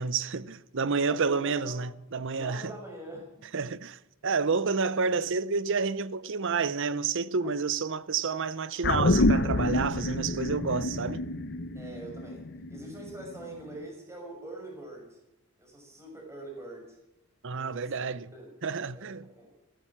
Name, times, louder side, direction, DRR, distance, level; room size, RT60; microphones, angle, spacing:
voice 1, 0.0-2.7 3.5-11.2 17.4-18.3 18.6-19.3, right 5 dB, 60° right, 0.8 m, -29 dB
voice 2, 1.0-1.8 2.3-3.5 7.4-7.6 11.7-15.2 15.6-17.0 17.5-17.9 18.3-18.5 18.9-19.5, right 1 dB, 15° right, 6.1 m, -44 dB
sound 1, 8.8-13.4 13.8-13.9, left 2 dB, 50° left, 0.9 m, -28 dB
15.5 x 12.5 x 7.3 m
head